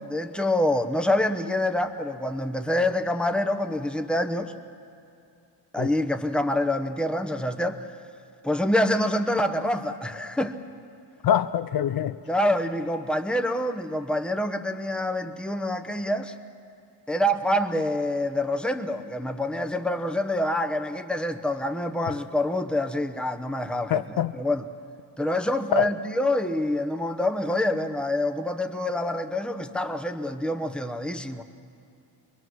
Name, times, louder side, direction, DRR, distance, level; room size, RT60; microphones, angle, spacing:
voice 1, 0.0-4.5 5.7-7.8 8.4-10.6 12.3-16.3 17.1-24.0 24.3-24.6 25.2-31.4, left 1 dB, ahead, 0.9 m, -26 dB
voice 2, 11.2-12.2 23.9-24.3 25.8-25.9, left 10 dB, 55° left, 0.5 m, -24 dB
24.5 x 22.0 x 6.3 m
cardioid pair, 125°, 43 cm